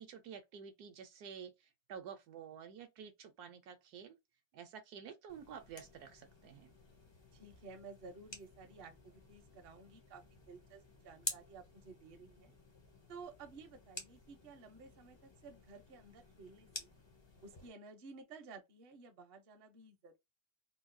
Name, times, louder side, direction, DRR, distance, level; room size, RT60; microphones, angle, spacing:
voice 1, 0.0-4.2 4.5-6.7, right 7 dB, 75° right, 1.1 m, -50 dB
sound 1, 5.3-17.7, left 2 dB, 35° left, 0.4 m, -51 dB
voice 2, 7.3-12.5 13.1-16.9 17.4-20.2, right 4 dB, 50° right, 0.7 m, -54 dB
3.7 x 2.3 x 2.6 m
omnidirectional pair, 1.8 m